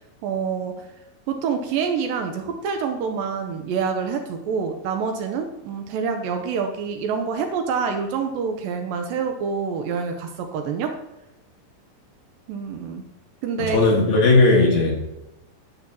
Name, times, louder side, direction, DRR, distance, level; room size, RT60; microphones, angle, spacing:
voice 1, 0.2-0.9 1.3-11.0 12.5-13.0 13.4-13.8, right 6 dB, 80° right, 5 dB, 2.3 m, -26 dB
voice 2, 13.7-15.0, left 3 dB, 55° left, -3 dB, 3.0 m, -16 dB
10.5 x 8.2 x 2.8 m, 0.93 s
omnidirectional pair, 4.3 m